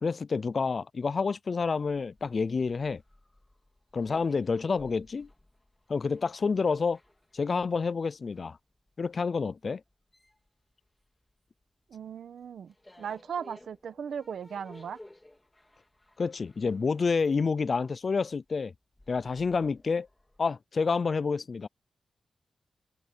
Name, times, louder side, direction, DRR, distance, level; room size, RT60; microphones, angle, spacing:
voice 1, 0.0-3.0 3.9-5.3 5.9-7.0 7.3-8.6 9.0-9.8 16.2-18.7 19.1-20.1 20.4-21.7, left 5 dB, 45° left, 0.4 m, -28 dB
sound 1, 1.6-11.6 11.9-20.4, left 1 dB, 15° left, 3.3 m, -56 dB
voice 2, 11.9-15.0, right 7 dB, 80° right, 1.4 m, -38 dB
wide cardioid pair, 140°, 0 cm